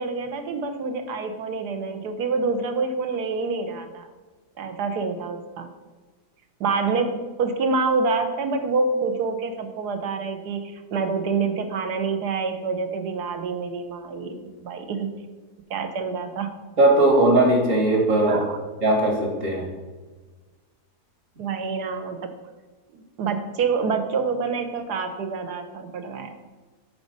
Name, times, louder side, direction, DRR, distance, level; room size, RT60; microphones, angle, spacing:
voice 1, 0.0-4.1 4.6-5.7 6.6-15.1 15.7-16.5 18.2-18.6 21.4-22.3 22.9-26.3, right 4 dB, 75° right, 7 dB, 1.4 m, -27 dB
voice 2, 16.8-18.4 18.8-19.6, right 1 dB, 50° right, 1 dB, 2.2 m, -18 dB
8.3 x 5.2 x 5.3 m, 1.3 s
omnidirectional pair, 1.7 m